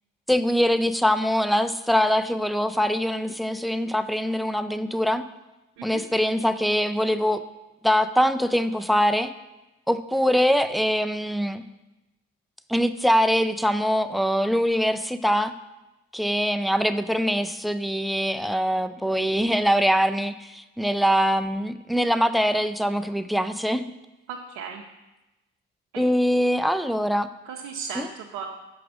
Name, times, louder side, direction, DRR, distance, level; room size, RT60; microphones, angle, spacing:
voice 1, 0.3-5.2 5.8-7.4 7.8-9.3 9.9-11.6 12.7-15.5 16.1-23.8 26.0-27.3 28.0-28.1, equal, ahead, 12 dB, 0.4 m, -23 dB
voice 2, 24.3-24.8 27.5-28.5, right 6 dB, 80° right, 0 dB, 0.7 m, -35 dB
6.1 x 4.9 x 6.1 m, 1.0 s
supercardioid pair, 50°, 29 cm